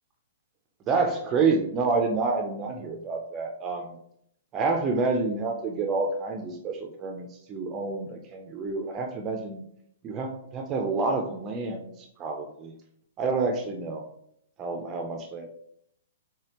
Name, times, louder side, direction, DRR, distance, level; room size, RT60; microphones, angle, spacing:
voice 1, 0.9-3.9 4.5-9.6 10.0-11.9 12.2-12.7 13.2-14.0 14.6-15.5, right 4 dB, 20° right, 3 dB, 0.4 m, -28 dB
5.0 x 3.2 x 2.8 m, 0.71 s
hypercardioid pair, 165°, 0 cm